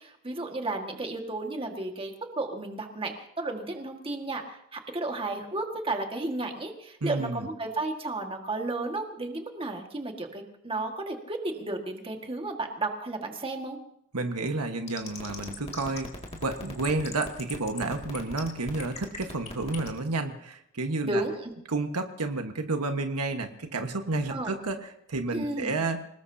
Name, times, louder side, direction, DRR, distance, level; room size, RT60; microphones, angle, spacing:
voice 1, 0.0-13.8 21.0-21.5 24.3-24.5 25.3-25.7, right 2 dB, 25° right, 3 dB, 1.8 m, -33 dB
voice 2, 7.0-7.5 14.1-16.1 16.4-21.2 21.7-26.1, right 3 dB, 90° right, 5 dB, 1.4 m, -31 dB
sound 1, 14.9-20.0, left 3 dB, 30° left, 2.3 m, -38 dB
27.0 x 19.0 x 2.8 m, 0.74 s
head